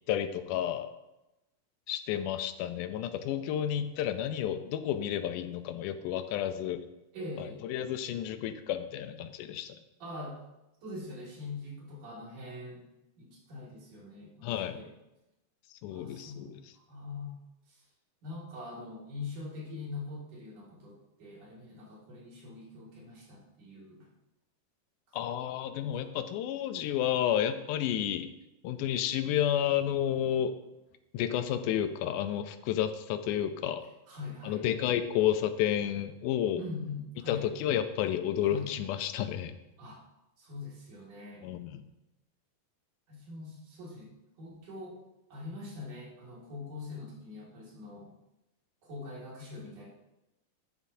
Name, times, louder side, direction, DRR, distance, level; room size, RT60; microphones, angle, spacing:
voice 1, 0.1-0.9 1.9-6.9 7.4-9.8 14.4-14.8 15.8-16.6 25.1-28.3 28.6-30.5 31.1-33.8 34.4-36.6 37.3-39.5 41.4-41.8, left 10 dB, 85° left, 10 dB, 2.1 m, -31 dB
voice 2, 7.1-7.6 10.0-10.4 10.8-12.8 13.2-14.9 15.9-17.3 17.7-17.8 18.2-24.1 25.1-25.3 25.8-25.9 34.1-34.7 36.6-37.5 38.4-38.7 39.8-40.0 40.4-41.4 43.1-44.1 44.4-45.0 45.3-48.1 48.8-49.9, left 3 dB, 75° right, -4 dB, 3.8 m, -43 dB
13.0 x 7.0 x 2.7 m, 0.94 s
omnidirectional pair, 3.6 m